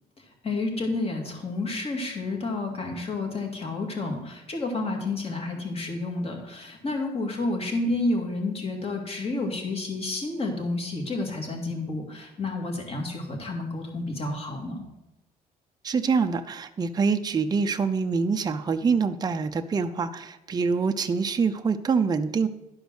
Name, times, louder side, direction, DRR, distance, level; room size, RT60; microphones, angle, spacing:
voice 1, 0.2-14.8, left 2 dB, 35° left, 2 dB, 2.3 m, -30 dB
voice 2, 15.8-22.5, right 5 dB, 25° right, 7 dB, 0.6 m, -25 dB
11.5 x 5.1 x 6.3 m, 0.91 s
cardioid pair, 110°, 17 cm